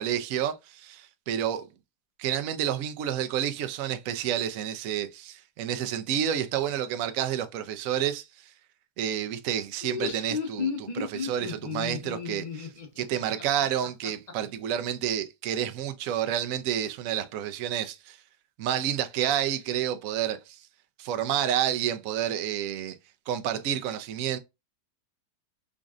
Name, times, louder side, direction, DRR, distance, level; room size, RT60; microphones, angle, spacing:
voice 1, 0.0-1.7 2.2-8.3 9.0-12.7 13.0-18.2 18.6-20.6 21.0-23.0 23.3-24.4, right 10 dB, 65° right, 0.9 m, -29 dB
Laughter, 9.7-14.3, left 6 dB, 35° left, 0.8 m, -33 dB
5.1 x 2.5 x 2.4 m
omnidirectional pair, 1.8 m